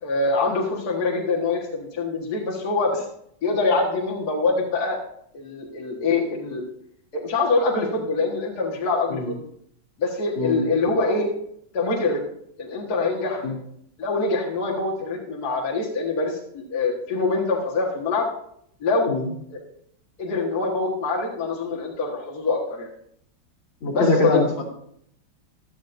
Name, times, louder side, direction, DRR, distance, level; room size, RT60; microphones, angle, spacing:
voice 1, 0.0-3.1 3.4-5.0 5.3-6.6 7.1-9.4 10.0-11.3 11.7-12.2 12.6-13.4 14.0-18.3 18.8-19.1 19.5-19.6 20.2-22.9 23.9-24.4, left 3 dB, 50° left, -2 dB, 2.0 m, -24 dB
voice 2, 23.8-24.6, left 2 dB, 75° left, -2 dB, 3.2 m, -22 dB
14.5 x 12.0 x 2.6 m, 0.69 s
omnidirectional pair, 2.2 m